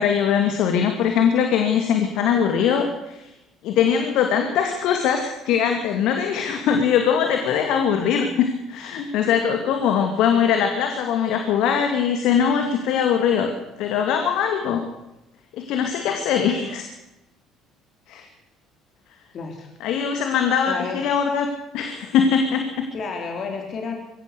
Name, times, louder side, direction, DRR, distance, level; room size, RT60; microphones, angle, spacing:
voice 1, 0.0-3.3 3.6-13.5 13.8-14.8 15.5-16.8 18.1-18.2 19.8-21.5 21.7-22.9, left 7 dB, 65° left, 4 dB, 2.5 m, -21 dB
voice 2, 19.3-19.7 20.7-21.2 22.9-23.9, left 4 dB, 50° left, 2 dB, 4.1 m, -31 dB
23.0 x 16.0 x 6.9 m, 0.93 s
hypercardioid pair, 55°, 0 cm